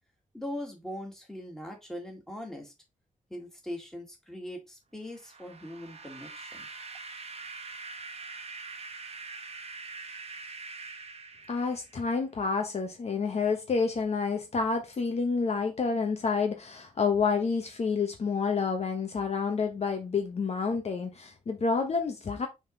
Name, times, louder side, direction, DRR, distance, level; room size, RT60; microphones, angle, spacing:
voice 1, 0.3-2.7 3.3-6.7, left 1 dB, 5° left, 2.2 m, -41 dB
sound 1, 5.1-12.1, right 4 dB, 45° right, 1.2 m, -43 dB
voice 2, 11.5-22.5, left 5 dB, 50° left, 1.1 m, -29 dB
6.3 x 3.8 x 4.0 m
wide cardioid pair, 140°, 14 cm